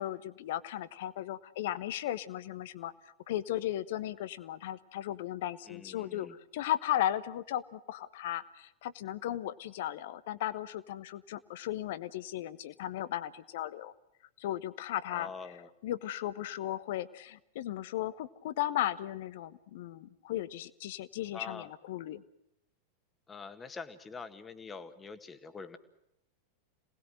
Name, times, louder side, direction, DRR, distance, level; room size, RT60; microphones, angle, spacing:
voice 1, 0.0-2.9 3.3-13.9 14.4-15.3 15.8-22.2, left 12 dB, 55° left, 15 dB, 1.1 m, -36 dB
voice 2, 5.7-6.4 15.1-15.7 21.3-21.7 23.3-25.8, left 4 dB, 15° left, 10 dB, 1.8 m, -45 dB
27.0 x 19.5 x 7.9 m, 0.84 s
figure-of-eight pair, 90°, 0 cm